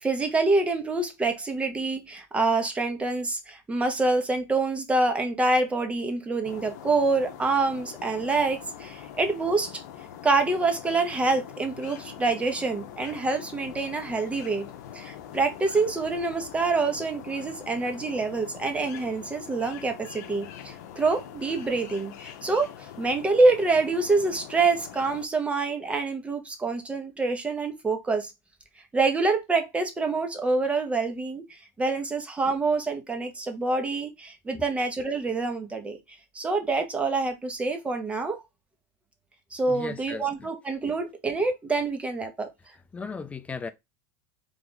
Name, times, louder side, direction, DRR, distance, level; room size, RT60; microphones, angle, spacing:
voice 1, 0.0-9.8 10.2-14.6 14.9-28.3 28.9-36.0 36.3-38.4 39.5-42.5, right 3 dB, 15° right, 0.9 m, -26 dB
sound 1, 6.4-25.3, left 10 dB, 75° left, 0.7 m, -43 dB
voice 2, 39.7-40.5 42.9-43.7, left 5 dB, 15° left, 0.4 m, -36 dB
3.5 x 2.4 x 3.9 m
supercardioid pair, 130°, 9 cm